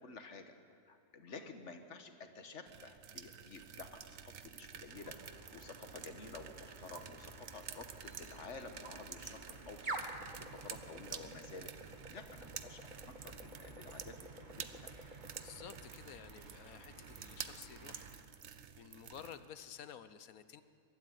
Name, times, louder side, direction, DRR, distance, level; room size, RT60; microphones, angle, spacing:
voice 1, 0.0-14.9, left 4 dB, 50° left, 7 dB, 1.6 m, -52 dB
sound 1, 2.7-19.5, right 8 dB, 55° right, 1.0 m, -51 dB
sound 2, 4.9-18.3, right 2 dB, 30° right, 1.5 m, -51 dB
voice 2, 15.4-18.2 18.8-20.6, left 8 dB, 70° left, 13 dB, 1.2 m, -52 dB
23.0 x 12.5 x 9.4 m, 2.5 s
omnidirectional pair, 1.6 m